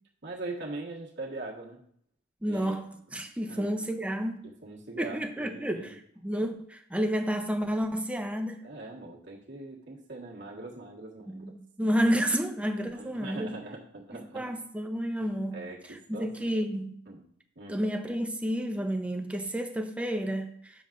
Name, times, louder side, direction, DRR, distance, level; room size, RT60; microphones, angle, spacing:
voice 1, 0.2-1.8 2.5-2.8 3.5-3.7 4.4-6.0 8.6-11.5 12.9-14.5 15.2-15.8 16.1-16.5 17.1-17.2 17.6-17.8, right 2 dB, 60° right, 1.6 m, -42 dB
voice 2, 2.4-4.4 5.0-8.6 11.3-13.5 14.1-15.6 15.9-17.0 17.7-20.7, equal, 5° right, 0.6 m, -30 dB
9.3 x 7.0 x 2.5 m
head